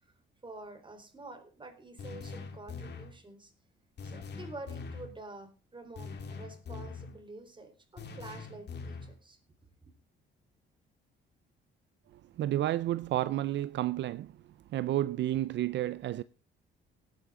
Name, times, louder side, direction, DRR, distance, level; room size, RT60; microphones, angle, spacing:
voice 1, 0.4-3.5 4.0-9.4, right 2 dB, 25° right, 3.9 m, -48 dB
sound 1, 2.0-3.2 4.0-5.1 6.0-7.2 8.0-9.2, left 4 dB, 60° left, 2.3 m, -43 dB
voice 2, 12.4-14.3 14.7-16.2, right 13 dB, 65° right, 0.5 m, -31 dB
18.0 x 9.1 x 3.7 m
cardioid pair, 90°, 20 cm